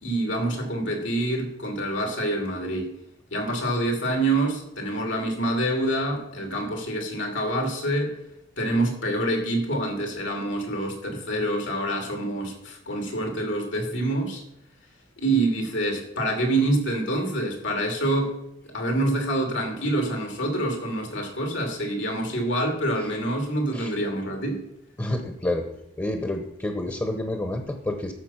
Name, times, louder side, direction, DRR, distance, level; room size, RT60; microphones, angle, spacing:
voice 1, 0.0-2.9 3.3-8.1 8.6-14.4 15.2-18.3 18.7-24.6, right 1 dB, 75° left, 2 dB, 2.7 m, -26 dB
voice 2, 25.0-25.6 26.0-28.1, left 1 dB, 15° left, 4 dB, 1.0 m, -28 dB
11.5 x 7.2 x 5.8 m, 0.76 s
head